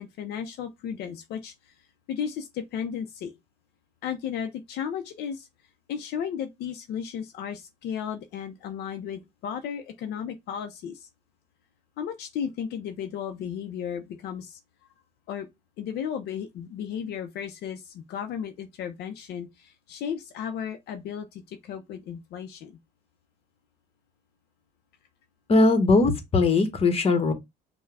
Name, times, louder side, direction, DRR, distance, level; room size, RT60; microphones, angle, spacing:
voice 1, 0.0-1.7 2.1-3.3 4.0-5.5 5.9-11.1 12.0-14.6 15.3-15.5 15.8-22.8, left 8 dB, 75° left, 0.6 m, -34 dB
voice 2, 25.5-27.3, left 3 dB, 35° left, 1.1 m, -20 dB
5.5 x 2.2 x 3.4 m
cardioid pair, 110°, 17 cm